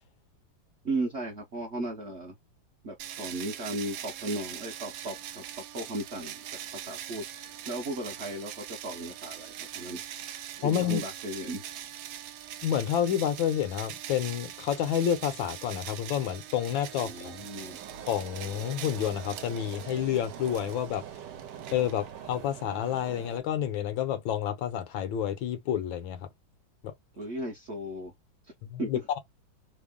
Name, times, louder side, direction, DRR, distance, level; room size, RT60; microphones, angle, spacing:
voice 1, 0.8-2.3 2.8-10.0 10.6-11.7 17.0-17.8 27.2-28.1 28.8-28.9, right 1 dB, 55° right, 0.7 m, -36 dB
sound 1, 3.0-22.3, right 11 dB, 90° right, 1.3 m, -42 dB
voice 2, 10.6-11.0 12.6-17.4 18.1-21.0 21.7-26.3 26.8-26.9 28.6-29.2, left 10 dB, 85° left, 1.5 m, -29 dB
sound 2, 15.6-23.4, right 9 dB, 70° right, 1.2 m, -45 dB
3.5 x 2.0 x 3.5 m
omnidirectional pair, 2.1 m